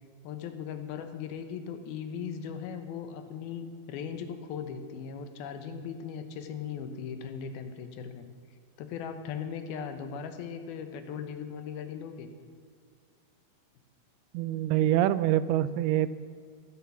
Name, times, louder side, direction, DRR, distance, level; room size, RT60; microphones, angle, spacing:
voice 1, 0.2-8.3 8.8-12.3, left 7 dB, 75° left, 8 dB, 2.8 m, -38 dB
voice 2, 14.3-16.1, right 12 dB, 85° right, 15 dB, 2.5 m, -25 dB
15.0 x 10.5 x 7.1 m, 2.1 s
omnidirectional pair, 4.5 m